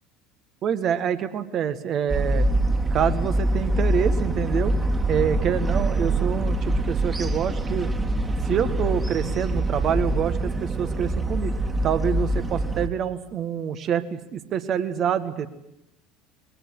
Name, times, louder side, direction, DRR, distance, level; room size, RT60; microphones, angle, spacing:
voice 1, 0.6-2.5 2.9-4.7 5.1-7.9 8.5-11.5 11.8-15.5, right 8 dB, 40° right, 11 dB, 1.7 m, -26 dB
sound 1, 2.1-12.9, right 1 dB, 20° right, 2.4 m, -24 dB
22.5 x 19.0 x 9.7 m, 0.84 s
figure-of-eight pair, 70°, 0 cm